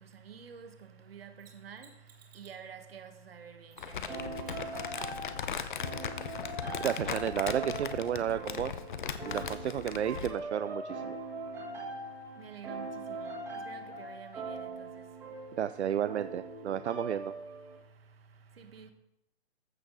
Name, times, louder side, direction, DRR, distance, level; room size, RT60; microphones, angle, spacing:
voice 1, 0.2-0.7 1.1-1.9 2.3-4.2 4.5-4.7 12.4-12.9 13.2-13.3 13.7-14.6 18.6-18.9, right 7 dB, 60° right, 1.7 m, -48 dB
Mechanisms, 1.4-2.6 3.7-4.1 4.5-4.6 7.4-7.5, right 8 dB, 35° right, 2.3 m, -57 dB
Crumpling crinkling, 3.8-10.4, left 7 dB, 45° left, 0.8 m, -38 dB
sound 1, 4.1-17.8, right 2 dB, 5° right, 1.6 m, -41 dB
voice 2, 6.8-8.7 9.2-11.2 15.6-17.3, right 9 dB, 85° right, 0.6 m, -32 dB
14.5 x 6.0 x 4.1 m
hypercardioid pair, 165°, 33 cm